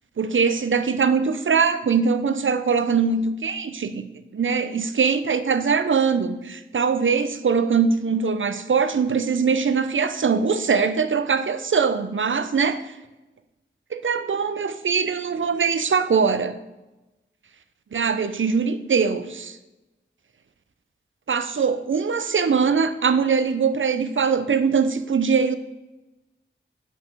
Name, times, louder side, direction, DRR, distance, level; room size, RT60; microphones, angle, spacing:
voice 1, 0.2-4.1 4.3-12.8 13.9-16.6 17.9-19.6 21.3-25.6, right 5 dB, 75° right, 11 dB, 0.6 m, -22 dB
5.4 x 5.2 x 6.6 m, 1.0 s
wide cardioid pair, 40°, 20 cm